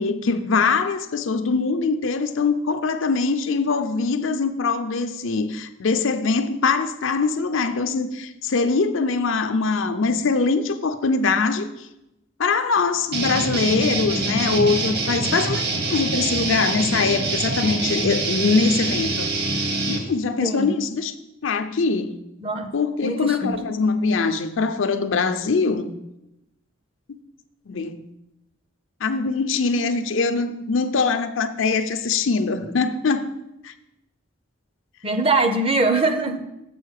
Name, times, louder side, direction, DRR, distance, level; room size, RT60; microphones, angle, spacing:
voice 1, 0.0-11.9 12.4-15.6 15.9-19.3 19.9-21.1 21.4-22.2 22.7-25.9 27.7-28.0 29.0-33.3 33.6-33.7, left 4 dB, 70° left, 0.6 m, -22 dB
sound 1, 13.1-20.0, right 2 dB, 50° right, 1.2 m, -25 dB
voice 2, 23.0-23.5 35.0-36.4, right 2 dB, 25° right, 0.6 m, -22 dB
7.7 x 4.7 x 6.5 m
head